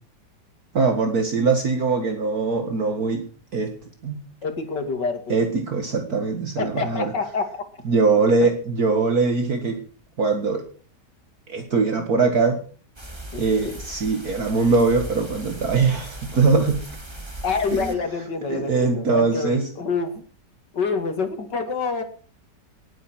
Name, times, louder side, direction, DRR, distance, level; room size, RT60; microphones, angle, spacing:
voice 1, 0.7-3.2 3.5-3.7 4.0-4.2 5.3-7.1 7.8-9.8 10.2-10.7 11.5-12.6 13.3-16.9 17.7-17.9 18.5-19.7, right 4 dB, 60° right, 5 dB, 2.3 m, -22 dB
voice 2, 4.4-5.4 6.6-7.4 8.4-8.5 13.3-13.7 17.4-20.2 20.7-22.0, left 4 dB, 75° left, 7 dB, 3.0 m, -27 dB
sound 1, 13.0-17.9, right 1 dB, 15° right, 2.1 m, -38 dB
19.0 x 9.2 x 6.2 m, 0.42 s
omnidirectional pair, 1.9 m